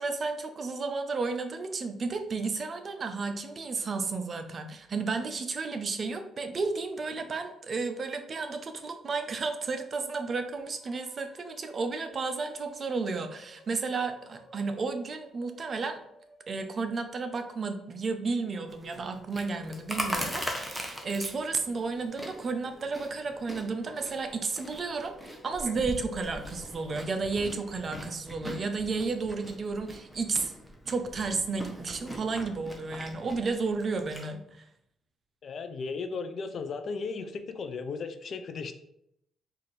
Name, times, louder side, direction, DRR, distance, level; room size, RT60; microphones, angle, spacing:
voice 1, 0.0-16.0 16.5-30.5 30.9-34.6, right 4 dB, 45° right, 7 dB, 0.5 m, -32 dB
sound 1, 10.5-26.4, left 5 dB, 75° left, 1.3 m, -54 dB
Chewing mastication, 18.7-34.3, equal, ahead, 0.8 m, -41 dB
voice 2, 35.4-38.7, left 4 dB, 55° left, 8 dB, 0.4 m, -35 dB
4.4 x 2.6 x 3.0 m, 0.77 s
cardioid pair, 90°, 0 cm